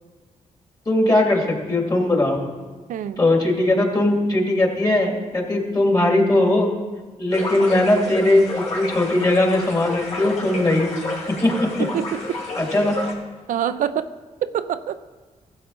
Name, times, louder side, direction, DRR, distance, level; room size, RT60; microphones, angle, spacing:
voice 1, 0.9-2.4 3.2-6.7 7.2-10.9 11.3-11.7 12.6-12.9, left 1 dB, 25° left, 1 dB, 2.5 m, -19 dB
voice 2, 2.9-3.2 11.8-12.4 13.5-14.1 14.4-15.0, right 9 dB, 70° right, 11 dB, 0.4 m, -25 dB
sound 1, 7.3-13.1, left 2 dB, 55° left, 3.1 m, -30 dB
14.0 x 7.5 x 4.0 m, 1.4 s
cardioid pair, 60°, 14 cm